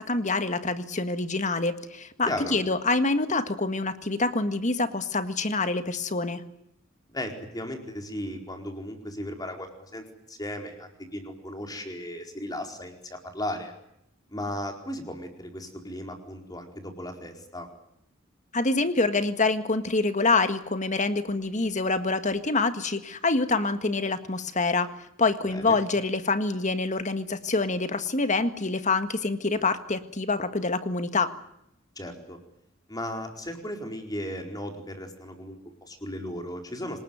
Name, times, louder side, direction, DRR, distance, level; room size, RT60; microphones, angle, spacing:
voice 1, 0.0-6.4 18.5-24.9 25.2-31.3, left 3 dB, 35° left, 10 dB, 1.7 m, -26 dB
voice 2, 2.3-2.6 7.1-13.7 14.3-17.7 25.5-25.8 32.0-32.4 32.9-37.0, left 1 dB, 20° left, 4 dB, 4.5 m, -36 dB
26.5 x 19.5 x 9.3 m, 0.79 s
head